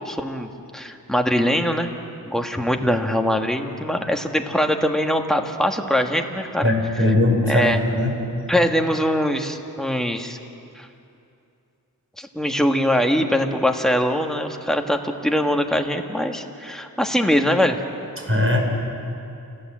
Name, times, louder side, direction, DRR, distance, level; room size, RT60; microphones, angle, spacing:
voice 1, 0.0-1.9 2.2-6.7 7.5-7.8 8.5-10.4 10.7-10.9 12.2-17.8, equal, ahead, 3 dB, 1.7 m, -22 dB
voice 2, 6.6-8.1 18.2-18.6, left 1 dB, 35° right, 0 dB, 5.4 m, -19 dB
29.5 x 15.5 x 7.6 m, 2.6 s
wide cardioid pair, 60°, 36 cm